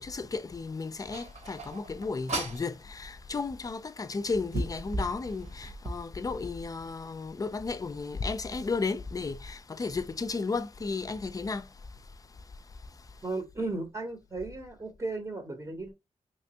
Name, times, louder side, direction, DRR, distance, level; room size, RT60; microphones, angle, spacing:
voice 1, 0.0-11.6, left 4 dB, 30° left, 0.3 m, -34 dB
sound 1, 1.1-2.7 3.6-3.7 4.3-6.0, right 1 dB, 65° right, 1.0 m, -36 dB
voice 2, 13.2-15.9, right 2 dB, 20° right, 0.7 m, -35 dB
3.3 x 3.0 x 2.7 m
wide cardioid pair, 120°, 13 cm